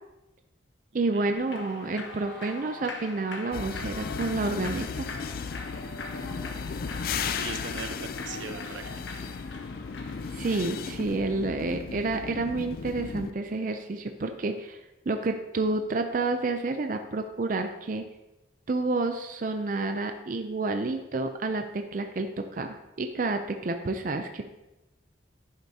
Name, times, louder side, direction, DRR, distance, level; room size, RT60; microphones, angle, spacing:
voice 1, 0.9-5.1 10.3-14.8 15.1-18.1 18.7-24.4, right 3 dB, 45° right, 6 dB, 0.4 m, -29 dB
Human voice / Clapping / Cheering, 1.3-11.1, left 3 dB, 80° left, 1.0 m, -42 dB
sound 1, 3.5-13.3, left 5 dB, 50° left, 0.4 m, -35 dB
voice 2, 6.6-8.8, right 4 dB, 85° right, 6 dB, 0.9 m, -40 dB
10.5 x 8.0 x 2.8 m, 1.0 s
head